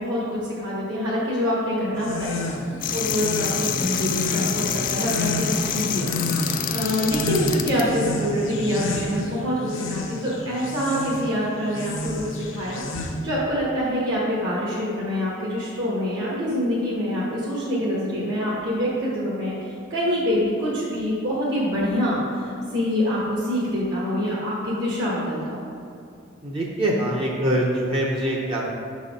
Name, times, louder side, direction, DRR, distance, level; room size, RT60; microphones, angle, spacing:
voice 1, 0.0-2.5 2.9-6.1 6.7-25.6, equal, 65° right, -7 dB, 1.3 m, -25 dB
sound 1, 1.9-13.4, left 2 dB, 75° left, 0.7 m, -30 dB
sound 2, 2.8-7.8, left 8 dB, 40° left, 0.3 m, -27 dB
voice 2, 26.4-28.7, right 1 dB, 25° right, -2 dB, 0.6 m, -24 dB
6.2 x 4.2 x 5.0 m, 2.5 s
head